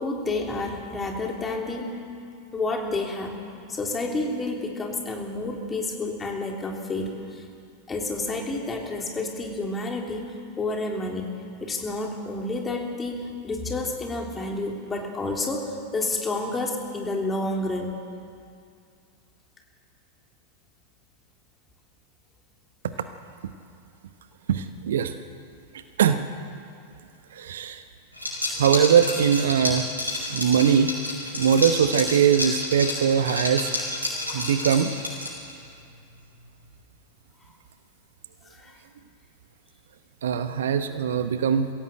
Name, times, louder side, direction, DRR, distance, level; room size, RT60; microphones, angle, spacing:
voice 1, 0.0-2.0 2.5-3.4 3.7-7.5 7.9-17.9 38.5-38.7, left 2 dB, 15° left, 1 dB, 3.4 m, -30 dB
voice 2, 24.5-25.1 26.0-26.2 27.3-27.8 28.6-29.9 30.3-30.9 31.3-33.7 34.3-34.9 40.2-41.7, right 8 dB, 60° right, 10 dB, 1.0 m, -21 dB
Liquid, 28.2-35.6, left 1 dB, 90° right, 5.9 m, -30 dB
23.5 x 16.5 x 7.9 m, 2.4 s
figure-of-eight pair, 90°, 0 cm